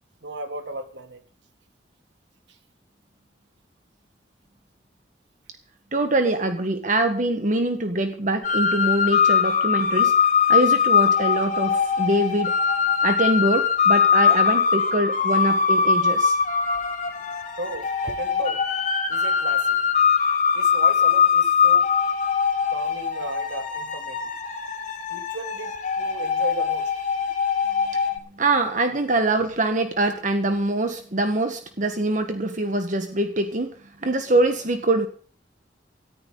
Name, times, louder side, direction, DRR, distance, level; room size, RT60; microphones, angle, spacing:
voice 1, 0.2-1.2 17.6-18.6 19.1-19.8 20.5-21.9 22.7-24.2 25.1-26.9, right 1 dB, 80° right, 5 dB, 3.1 m, -35 dB
voice 2, 5.9-10.1 10.5-12.5 13.0-16.4 28.4-33.7 34.0-35.1, right 2 dB, 45° right, 7 dB, 1.5 m, -23 dB
sound 1, 8.4-28.2, left 6 dB, 45° left, 4.4 m, -22 dB
19.0 x 14.0 x 4.0 m, 0.43 s
head